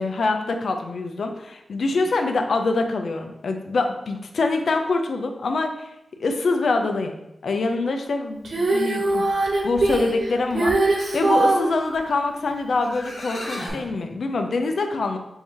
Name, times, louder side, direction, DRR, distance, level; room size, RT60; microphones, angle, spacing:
voice 1, 0.0-5.9 6.2-7.1 7.4-9.3 9.6-15.2, left 3 dB, 75° left, 5 dB, 0.5 m, -25 dB
Female singing, 8.4-11.7 13.7-13.8, right 2 dB, 65° right, 0.8 m, -21 dB
sound 1, 12.5-12.6 12.8-13.9, left 1 dB, 90° left, 1.5 m, -34 dB
4.6 x 2.7 x 3.5 m, 0.86 s
wide cardioid pair, 85°, 0 cm